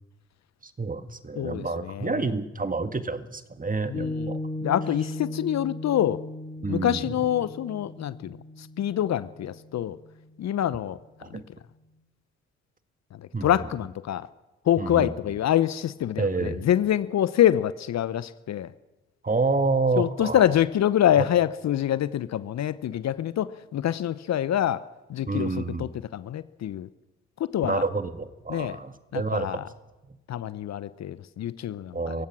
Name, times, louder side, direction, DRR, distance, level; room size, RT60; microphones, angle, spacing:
voice 1, 0.6-4.4 6.6-7.3 11.2-11.4 13.3-13.5 14.8-15.1 16.2-16.6 19.2-20.4 21.2-21.3 25.3-25.9 27.6-29.6 30.0-30.2 31.9-32.3, right 3 dB, 25° right, 10 dB, 1.8 m, -28 dB
voice 2, 1.4-2.3 3.9-4.3 4.6-6.2 6.7-8.4 8.8-10.0 10.4-11.0 11.3-11.4 13.2-14.3 14.7-18.7 20.0-24.8 25.1-26.9 27.5-27.8 28.5-28.8 29.1-29.6 30.3-32.2, left 11 dB, 55° left, 16 dB, 0.8 m, -26 dB
Piano, 3.9-10.6, left 1 dB, 30° left, 2.7 m, -37 dB
27.5 x 16.0 x 6.2 m, 1.1 s
hypercardioid pair, 45°, 32 cm